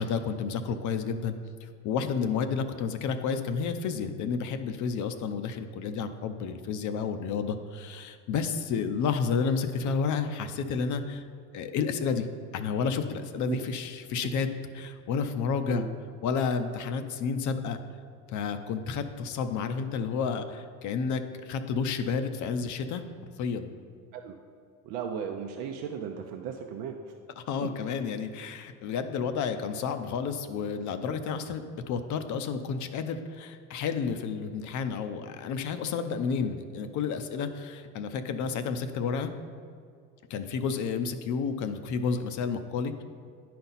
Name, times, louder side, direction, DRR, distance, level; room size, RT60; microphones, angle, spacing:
voice 1, 0.0-1.3 1.6-11.3 11.5-12.3 12.5-14.5 14.7-15.9 16.2-17.8 18.3-23.0 23.4-23.7 27.4-39.3 40.3-43.0, left 5 dB, 55° left, 9 dB, 0.6 m, -31 dB
voice 2, 24.8-27.1, right 7 dB, 80° right, 3 dB, 0.6 m, -36 dB
10.0 x 4.3 x 4.1 m, 2.3 s
supercardioid pair, 95°, 36 cm